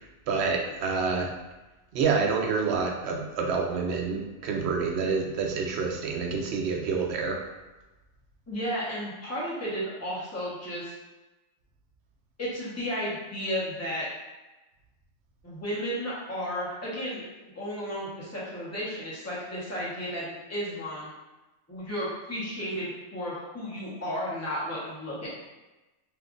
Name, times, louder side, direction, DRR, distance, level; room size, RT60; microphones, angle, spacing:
voice 1, 0.3-1.3 1.9-7.4, right 5 dB, 65° right, 1 dB, 0.7 m, -27 dB
voice 2, 8.5-10.9 12.4-14.0 15.4-21.1 21.7-25.3, equal, 15° left, -8 dB, 0.8 m, -33 dB
2.8 x 2.4 x 3.7 m, 1.1 s
omnidirectional pair, 1.4 m